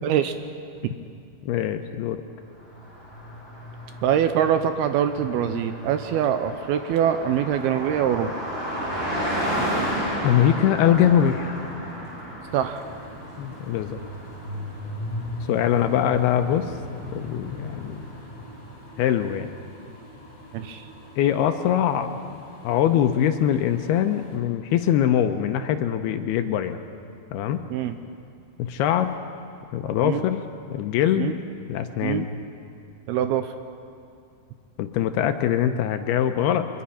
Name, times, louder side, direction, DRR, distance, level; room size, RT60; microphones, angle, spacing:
voice 1, 0.0-0.3 0.8-0.9 4.0-8.3 12.5-12.9 20.5-20.9 27.7-28.0 30.0-30.2 31.2-31.4 32.0-32.3 33.1-33.5, right 9 dB, 85° right, 9 dB, 2.3 m, -24 dB
voice 2, 1.4-2.2 10.2-11.6 13.4-14.0 15.5-16.7 17.1-18.1 19.0-19.5 21.2-26.8 27.3-27.6 28.6-29.1 29.7-30.4 30.7-31.4 31.7-32.3 34.8-36.7, left 10 dB, 80° left, 7 dB, 2.4 m, -23 dB
Car passing by, 2.6-18.7, equal, 25° right, 6.0 m, -33 dB
sound 1, 12.4-24.4, equal, 25° left, 6.0 m, -47 dB
24.5 x 22.0 x 5.6 m, 2.4 s
omnidirectional pair, 5.2 m